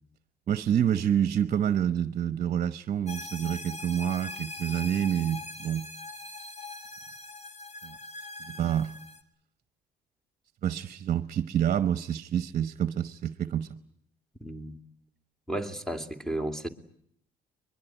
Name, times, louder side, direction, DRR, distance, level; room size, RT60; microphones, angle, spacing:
voice 1, 0.5-5.9 7.8-7.9 8.5-8.9 10.6-13.7, right 9 dB, 50° right, 1.0 m, -28 dB
sound 1, 3.1-9.2, left 2 dB, 40° left, 2.8 m, -41 dB
voice 2, 14.4-14.8 15.5-16.7, right 1 dB, 5° left, 2.6 m, -33 dB
23.0 x 22.5 x 9.1 m
cardioid pair, 110°, 17 cm